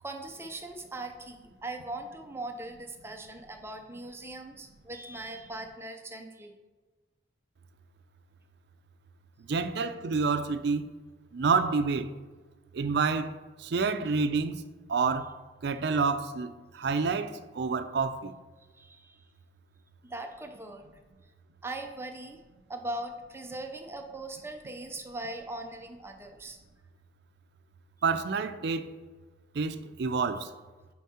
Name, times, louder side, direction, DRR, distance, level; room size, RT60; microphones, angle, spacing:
voice 1, 0.0-6.6 18.7-19.2 20.0-20.9 21.6-22.4 22.7-26.6, right 2 dB, 15° right, 0.5 m, -40 dB
voice 2, 9.5-10.8 11.3-12.1 12.7-14.5 14.9-15.3 15.6-18.3 28.0-28.9 29.6-30.5, right 4 dB, 70° right, 0.5 m, -28 dB
7.2 x 4.6 x 4.3 m
head